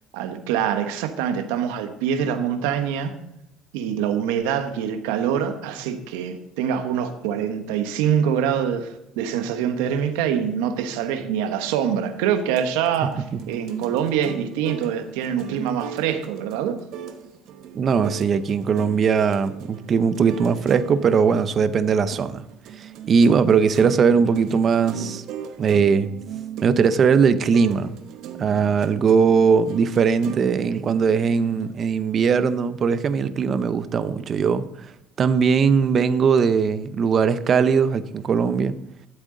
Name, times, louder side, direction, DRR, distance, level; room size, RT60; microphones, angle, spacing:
voice 1, 0.1-3.2 3.7-16.8, right 8 dB, 90° right, 8 dB, 1.1 m, -25 dB
sound 1, 11.8-31.7, right 9 dB, 65° right, 1.1 m, -38 dB
voice 2, 17.7-22.4 22.8-25.2 25.6-26.1 26.6-27.9 28.4-34.9 35.2-38.8, right 6 dB, 40° right, 13 dB, 0.7 m, -20 dB
12.5 x 7.9 x 3.9 m, 0.83 s
cardioid pair, 110°, 0 cm